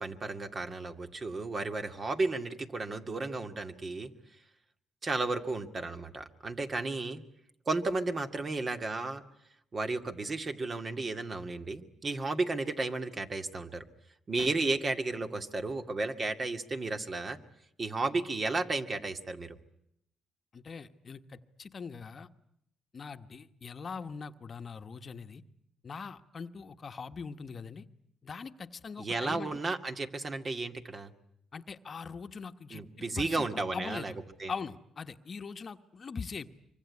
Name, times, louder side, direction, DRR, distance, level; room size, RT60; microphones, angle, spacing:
voice 1, 0.0-4.1 5.0-7.2 7.7-9.2 9.7-13.8 14.3-17.4 17.8-19.6 29.0-31.1 32.7-34.1 34.4-34.5, right 3 dB, 35° right, 7 dB, 2.2 m, -33 dB
voice 2, 20.5-22.3 22.9-25.4 25.8-27.8 28.2-29.5 31.5-32.8 33.2-34.2 34.5-36.5, left 5 dB, 40° left, 9 dB, 1.2 m, -41 dB
25.0 x 24.5 x 9.7 m, 0.76 s
cardioid pair, 90°, 0 cm